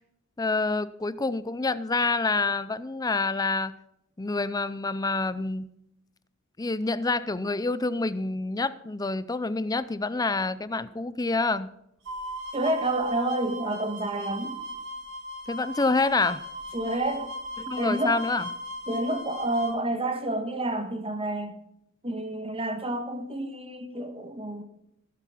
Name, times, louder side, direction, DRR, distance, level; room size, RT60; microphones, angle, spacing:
voice 1, 0.4-3.7 4.2-5.7 6.6-11.7 15.5-16.4 17.6-18.4, left 3 dB, 20° left, 16 dB, 0.5 m, -27 dB
sound 1, 12.0-19.7, equal, 65° right, 4.0 m, -37 dB
voice 2, 12.5-14.6 16.7-17.3 17.8-18.2 18.9-21.6 22.0-24.6, right 1 dB, 25° right, 7 dB, 1.6 m, -29 dB
16.0 x 8.3 x 5.8 m, 0.80 s
head